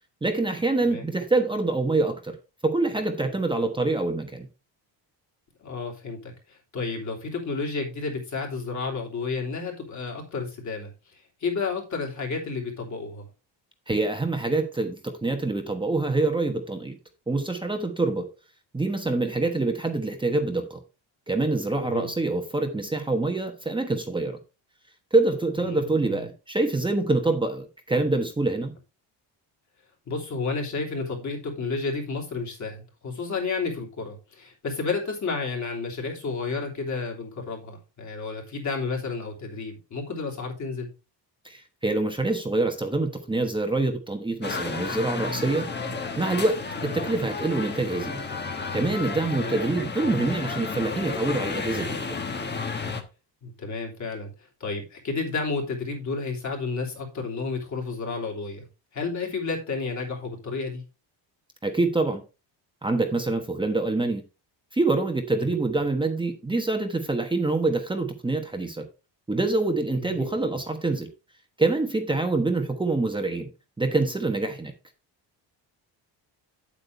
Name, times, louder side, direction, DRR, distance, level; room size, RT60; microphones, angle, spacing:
voice 1, 0.2-2.3 2.6-4.5 13.9-16.9 17.3-18.3 18.7-20.8 21.3-24.4 25.1-28.7 41.4-45.7 46.2-48.2 48.7-52.1 61.6-62.2 62.8-64.2 64.7-68.8 69.3-71.1 71.6-73.5 73.8-74.7, right 2 dB, 10° right, 1.1 m, -25 dB
voice 2, 5.6-13.3 21.8-22.1 25.7-26.2 30.1-40.9 46.8-46.9 49.3-49.6 53.4-54.3 54.6-58.7 58.9-60.8 65.4-65.6 70.0-70.3, left 4 dB, 40° left, 3.3 m, -31 dB
sound 1, 44.4-53.0, left 4 dB, 25° left, 1.3 m, -32 dB
8.8 x 8.3 x 3.3 m
cardioid pair, 145°, 45 cm